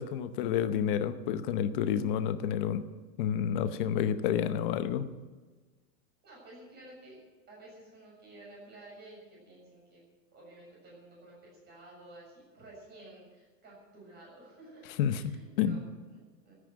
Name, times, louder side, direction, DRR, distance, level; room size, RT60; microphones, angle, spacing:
voice 1, 0.0-2.8 3.2-5.1 15.0-15.8, left 9 dB, 30° left, 11 dB, 0.8 m, -29 dB
voice 2, 6.2-7.2 7.5-10.0 10.3-15.8 16.1-16.5, right 1 dB, 20° right, -3 dB, 6.9 m, -52 dB
14.0 x 9.9 x 9.4 m, 1.3 s
supercardioid pair, 170°, 48 cm